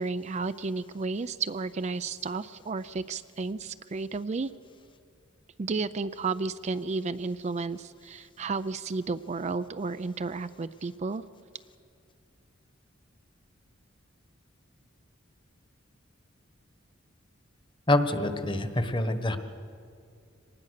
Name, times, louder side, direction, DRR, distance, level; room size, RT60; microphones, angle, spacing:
voice 1, 0.0-4.5 5.6-11.2, right 4 dB, 35° right, 13 dB, 0.4 m, -32 dB
voice 2, 17.9-19.4, left 1 dB, 25° left, 9 dB, 1.3 m, -26 dB
25.0 x 19.5 x 6.6 m, 2.4 s
head